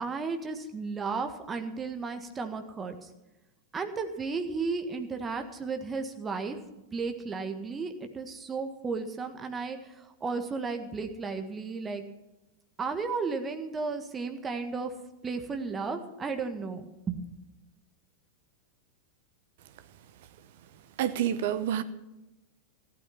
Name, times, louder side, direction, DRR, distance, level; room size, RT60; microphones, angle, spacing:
voice 1, 0.0-3.1 3.7-6.6 6.9-12.0 12.8-14.9 15.2-17.2, right 4 dB, 20° right, 6 dB, 1.7 m, -34 dB
voice 2, 21.0-21.8, right 10 dB, 55° right, 12 dB, 0.9 m, -28 dB
15.0 x 12.5 x 5.9 m, 0.99 s
figure-of-eight pair, 90°, 0 cm